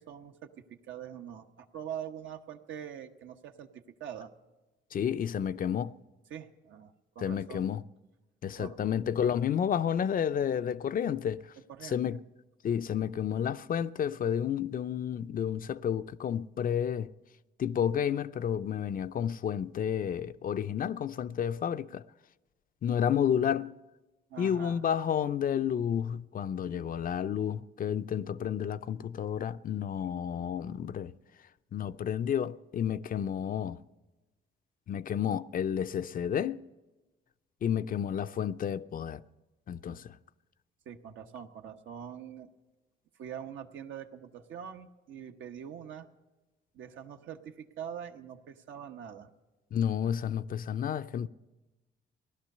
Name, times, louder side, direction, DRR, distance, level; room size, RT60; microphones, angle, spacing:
voice 1, 0.0-4.3 6.3-7.7 8.6-8.8 11.7-12.0 24.3-24.8 40.8-42.5 43.2-46.1 46.7-49.3 51.2-51.3, right 9 dB, 75° right, 1.0 m, -44 dB
voice 2, 4.9-6.0 7.2-7.8 8.4-11.5 11.8-12.2 12.6-17.1 17.6-22.0 22.8-23.7 24.4-31.1 31.7-33.8 34.9-36.6 37.6-39.2 39.7-40.2 49.7-51.3, left 8 dB, 45° left, 0.5 m, -31 dB
16.5 x 11.5 x 6.6 m
cardioid pair, 90°, 20 cm